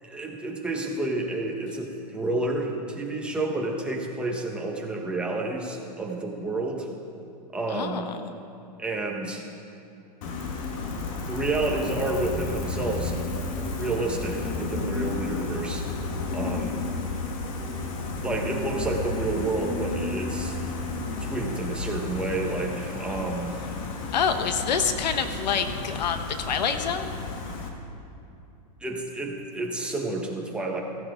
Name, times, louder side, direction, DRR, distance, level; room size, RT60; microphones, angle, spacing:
voice 1, 0.0-6.9 7.5-8.1 8.8-9.4 11.3-13.4 13.8-15.9 16.3-16.8 18.2-20.6 21.2-23.5 28.8-30.8, right 2 dB, 5° right, -1 dB, 1.3 m, -30 dB
voice 2, 7.7-8.3 24.1-27.1, left 6 dB, 90° left, 8 dB, 1.1 m, -27 dB
Gull seagull, 10.2-27.7, left 3 dB, 55° left, 1.7 m, -32 dB
15.5 x 15.5 x 3.9 m, 2.7 s
supercardioid pair, 150°, 21 cm